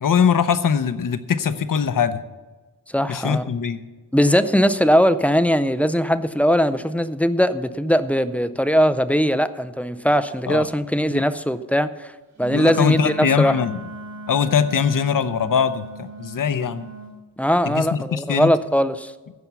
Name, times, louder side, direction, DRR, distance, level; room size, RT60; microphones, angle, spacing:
voice 1, 0.0-2.2 3.1-3.8 10.5-10.7 11.1-11.2 12.5-13.8 14.3-16.9 17.7-18.5, left 7 dB, 65° left, 12 dB, 0.8 m, -21 dB
voice 2, 2.9-3.4 4.1-12.1 12.4-13.6 17.4-19.1, equal, 5° left, 13 dB, 0.4 m, -20 dB
Wind instrument woodwind instrument, 12.4-17.1, right 2 dB, 50° right, 1.4 m, -38 dB
15.5 x 6.0 x 6.8 m, 1.3 s
wide cardioid pair, 170°, 35 cm